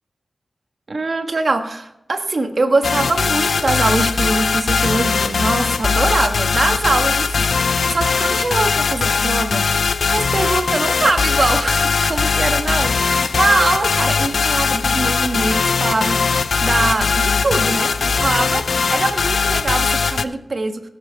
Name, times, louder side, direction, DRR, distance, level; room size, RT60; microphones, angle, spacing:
voice 1, 0.9-9.7 10.1-20.8, right 3 dB, 55° right, 6 dB, 1.5 m, -22 dB
sound 1, 2.8-20.2, left 5 dB, 85° left, 0.5 m, -19 dB
17.0 x 7.5 x 4.5 m, 0.82 s
wide cardioid pair, 70°, 0 cm